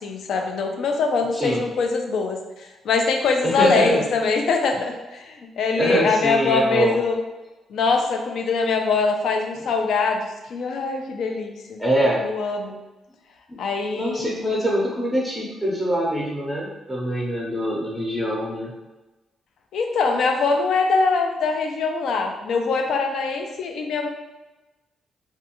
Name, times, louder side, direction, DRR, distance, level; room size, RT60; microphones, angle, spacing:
voice 1, 0.0-7.2 7.7-11.8 12.2-12.8 13.6-14.3 19.7-24.1, left 4 dB, 75° left, 3 dB, 0.4 m, -23 dB
voice 2, 3.4-4.0 5.7-7.0 11.8-12.2 13.5-13.6 13.9-18.7, right 1 dB, 5° left, -4 dB, 0.6 m, -23 dB
2.4 x 2.3 x 2.8 m, 1.1 s
cardioid pair, 80°, 0 cm